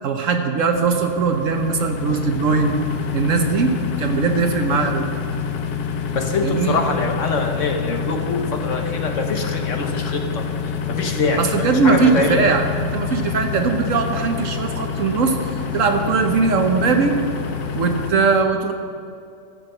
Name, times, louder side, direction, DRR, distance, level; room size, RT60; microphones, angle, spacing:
voice 1, 0.0-2.8 3.1-5.1 6.4-6.8 11.4-15.4 15.7-17.2 17.7-18.7, right 4 dB, 60° right, 5 dB, 1.2 m, -20 dB
sound 1, 0.7-18.1, left 6 dB, 75° left, 1.3 m, -27 dB
voice 2, 6.1-10.5 10.9-12.5, left 3 dB, 55° left, 4 dB, 1.2 m, -24 dB
13.5 x 8.0 x 6.6 m, 2.5 s
omnidirectional pair, 1.7 m